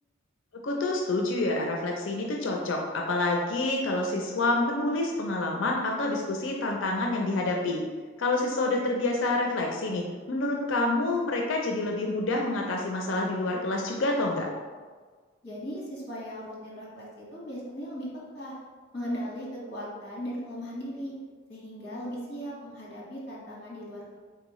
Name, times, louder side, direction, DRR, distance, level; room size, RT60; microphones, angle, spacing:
voice 1, 0.6-7.8 8.2-14.5, left 2 dB, 80° left, 0 dB, 0.5 m, -28 dB
voice 2, 15.4-18.1 18.3-18.5 18.9-21.1 21.5-24.1, equal, 50° left, -5 dB, 1.4 m, -37 dB
4.0 x 3.5 x 3.0 m, 1.5 s
head